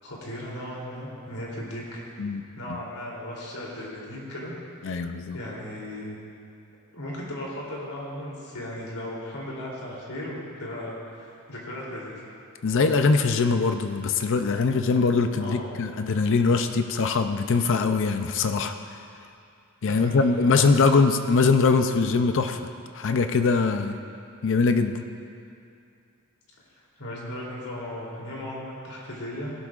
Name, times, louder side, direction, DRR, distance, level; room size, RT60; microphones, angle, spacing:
voice 1, 0.0-2.0 2.5-4.5 4.8-6.2 6.9-12.3 15.4-15.7 19.8-20.8 27.0-29.5, left 1 dB, 80° left, -5 dB, 3.2 m, -36 dB
voice 2, 2.2-2.8 4.8-5.4 12.6-19.0 19.8-22.6 22.9-24.0 24.4-25.0, left 4 dB, 60° left, 8 dB, 0.5 m, -22 dB
17.0 x 12.0 x 2.5 m, 2.4 s
head